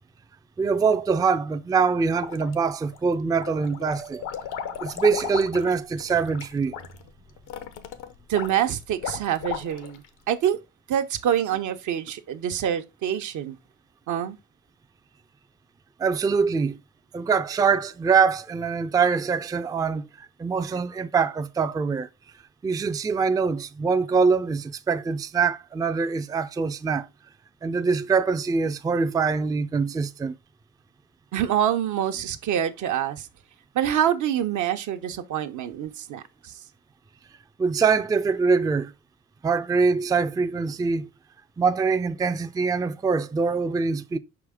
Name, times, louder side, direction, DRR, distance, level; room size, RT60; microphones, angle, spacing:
voice 1, 0.6-4.4 4.8-6.7 16.0-16.8 17.1-20.1 20.4-22.1 22.6-27.1 27.6-30.4 37.6-38.9 39.4-41.1 41.6-44.2, right 5 dB, 15° right, 0.3 m, -24 dB
sound 1, 2.2-3.0 3.3-10.1, left 9 dB, 85° left, 0.9 m, -35 dB
voice 2, 8.3-10.6 10.9-13.6 14.1-14.4 31.3-33.3 33.7-36.5, right 10 dB, 75° right, 0.8 m, -26 dB
5.5 x 4.8 x 3.5 m
cardioid pair, 90°, 30 cm